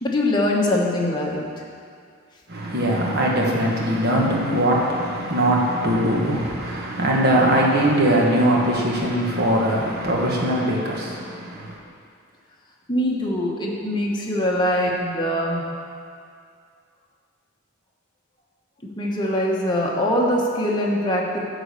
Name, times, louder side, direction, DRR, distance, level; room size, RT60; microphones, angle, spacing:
voice 1, 0.0-1.5 12.9-15.6 18.8-21.4, left 1 dB, 20° left, -3 dB, 1.0 m, -22 dB
voice 2, 2.5-11.8, right 1 dB, 50° right, -2 dB, 1.4 m, -21 dB
9.9 x 4.1 x 6.7 m, 2.3 s
head